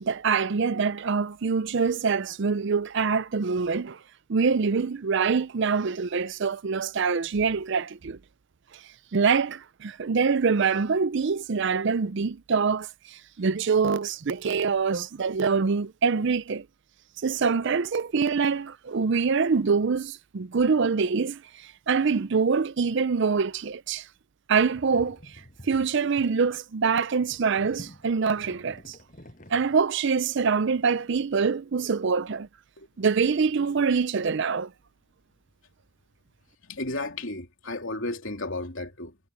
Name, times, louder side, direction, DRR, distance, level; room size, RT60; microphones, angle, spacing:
voice 1, 0.0-4.0 4.3-8.2 9.1-16.6 17.2-21.4 21.9-24.1 24.5-25.2 25.7-29.0 29.5-32.5 33.0-34.7, right 5 dB, 55° right, 0.5 m, -25 dB
sound 1, 24.7-26.4 27.2-29.8, equal, 35° left, 7.1 m, -48 dB
voice 2, 36.6-39.2, left 2 dB, 60° left, 3.4 m, -34 dB
head